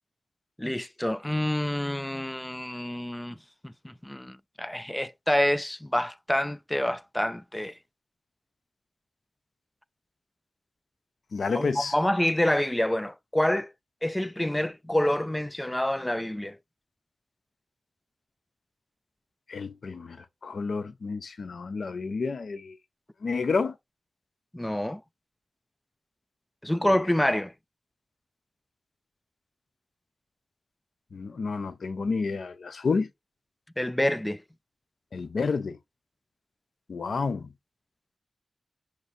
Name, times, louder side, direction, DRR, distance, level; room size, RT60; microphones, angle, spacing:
voice 1, 0.6-3.4 3.6-7.7 11.5-13.7 14.0-16.6 24.5-25.0 26.6-27.5 33.8-34.4, left 1 dB, 10° left, 0.3 m, -27 dB
voice 2, 11.3-11.9 19.5-22.8 23.2-23.7 26.8-26.9 31.1-33.1 35.1-35.8 36.9-37.5, left 4 dB, 75° left, 0.5 m, -30 dB
6.0 x 2.5 x 2.5 m
cardioid pair, 60°, 0 cm